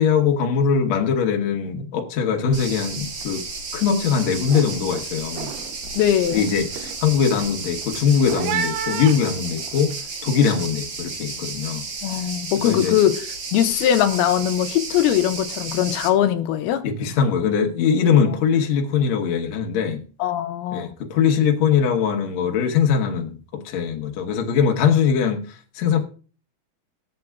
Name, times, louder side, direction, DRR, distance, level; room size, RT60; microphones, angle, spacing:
voice 1, 0.0-3.4 3.7-5.5 6.3-10.0 10.2-11.8 12.6-12.9 16.8-20.0 20.7-25.4 25.8-26.0, left 7 dB, 60° left, 2.0 m, -21 dB
sound 1, 2.5-16.1, right 4 dB, 45° right, 1.6 m, -33 dB
sound 2, 2.6-2.9 3.1-3.6 4.0-9.9, right 8 dB, 85° right, 2.8 m, -33 dB
voice 2, 6.0-6.5 12.0-13.2 13.5-16.8 18.3-18.4 20.2-20.9, left 11 dB, 85° left, 2.6 m, -21 dB
20.5 x 7.8 x 2.3 m
omnidirectional pair, 4.6 m